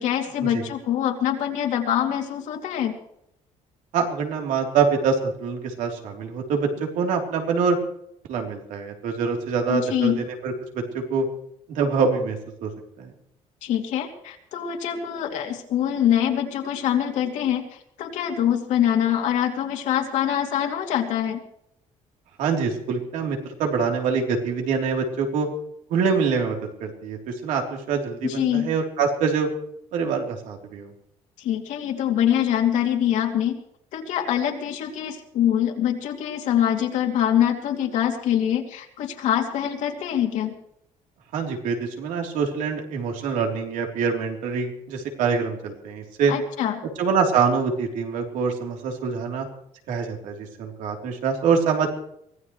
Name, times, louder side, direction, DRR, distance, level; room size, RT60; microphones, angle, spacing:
voice 1, 0.0-2.9 9.7-10.2 13.6-21.4 28.2-28.7 31.4-33.6 33.9-40.5 46.3-46.8, left 10 dB, 70° left, 3 dB, 2.8 m, -24 dB
voice 2, 3.9-7.8 8.3-11.3 11.7-12.7 13.0-13.1 22.4-25.5 25.9-29.5 29.9-30.9 41.3-46.3 47.0-49.5 49.9-51.9, right 5 dB, 85° right, 2 dB, 3.6 m, -25 dB
24.0 x 17.5 x 3.2 m, 0.76 s
cardioid pair, 175°, 13 cm